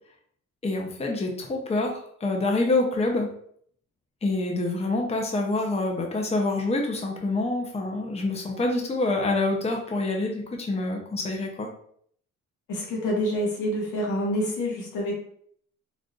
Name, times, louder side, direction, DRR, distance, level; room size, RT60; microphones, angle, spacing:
voice 1, 0.6-3.3 4.2-11.7, left 2 dB, 20° left, 1 dB, 0.6 m, -26 dB
voice 2, 12.7-15.1, equal, 90° left, -2 dB, 1.1 m, -27 dB
3.8 x 2.4 x 2.4 m, 0.63 s
cardioid pair, 90°, 30 cm